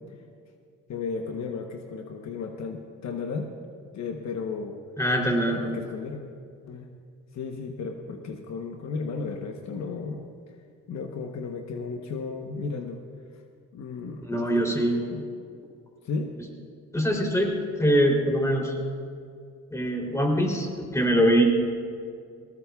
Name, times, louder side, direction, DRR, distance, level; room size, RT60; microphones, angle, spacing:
voice 1, 0.9-3.6 3.9-4.8 5.5-6.2 6.7-6.9 7.3-10.6 10.9-13.0 13.7-15.3 16.0-16.3, left 4 dB, 65° left, 4 dB, 1.0 m, -34 dB
voice 2, 5.0-5.6 14.3-15.0 16.9-18.8 19.7-21.4, equal, 10° left, 0 dB, 3.3 m, -23 dB
19.5 x 19.0 x 2.4 m, 2.3 s
cardioid pair, 90°, 30 cm